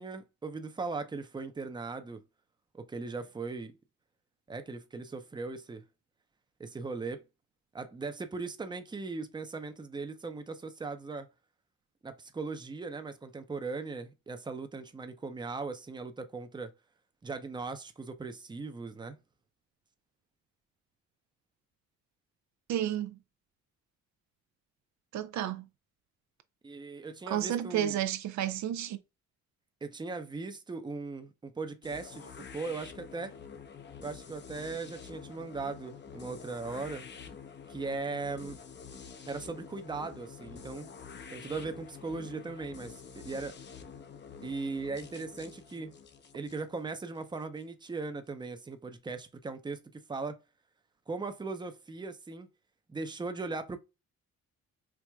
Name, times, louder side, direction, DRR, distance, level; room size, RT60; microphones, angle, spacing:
voice 1, 0.0-2.2 2.7-3.7 4.5-5.8 6.6-7.2 7.7-11.3 12.0-16.7 17.2-19.2 26.6-28.0 29.8-33.3 34.0-37.1 37.7-38.6 39.3-41.0 41.3-43.6 44.4-46.0 46.3-50.4 51.1-52.5 52.9-53.8, right 3 dB, 15° right, 0.6 m, -38 dB
voice 2, 22.7-23.1 25.1-25.6 27.3-29.0, right 11 dB, 70° right, 0.5 m, -31 dB
sound 1, 31.8-47.6, left 6 dB, 35° left, 0.6 m, -48 dB
4.6 x 2.5 x 2.2 m
cardioid pair, 90°, 30 cm